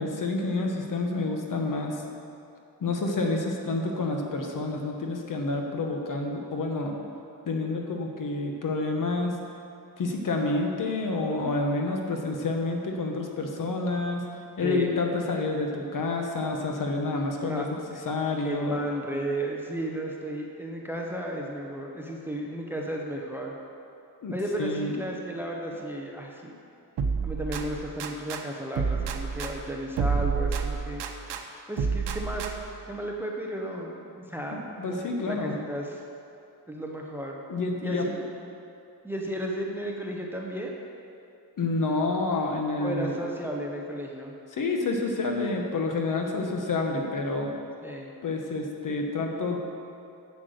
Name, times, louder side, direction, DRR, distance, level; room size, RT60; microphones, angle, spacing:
voice 1, 0.0-2.0 2.8-6.9 7.5-9.4 10.0-14.3 14.6-17.8 18.0-18.8 24.2-24.3 24.6-24.9 34.5-35.6 37.5-38.1 41.6-43.2 44.5-47.5 48.2-49.6, left 3 dB, 50° left, 2 dB, 1.2 m, -28 dB
voice 2, 14.6-14.9 17.4-17.7 17.9-18.0 18.4-23.6 24.3-26.5 27.2-31.0 31.7-32.6 32.9-36.0 36.7-37.4 37.8-38.2 39.0-40.7 42.8-44.3 47.8-48.1, right 1 dB, 5° right, 0 dB, 0.7 m, -34 dB
sound 1, 27.0-28.4 28.8-31.4 31.8-32.8, right 5 dB, 85° right, 0.8 m, -29 dB
7.8 x 7.6 x 6.5 m, 2.6 s
wide cardioid pair, 160°, 40 cm